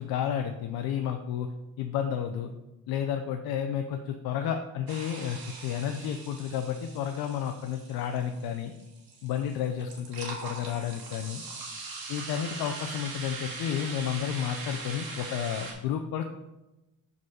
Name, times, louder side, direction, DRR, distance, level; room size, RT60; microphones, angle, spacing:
voice 1, 0.0-1.5 1.8-2.5 2.9-8.7 9.2-11.4 12.1-16.3, left 9 dB, 85° left, 5 dB, 0.5 m, -31 dB
sound 1, 4.9-15.7, right 3 dB, 80° right, 1.6 m, -41 dB
5.3 x 4.0 x 5.6 m, 1.0 s
cardioid pair, 175°, 36 cm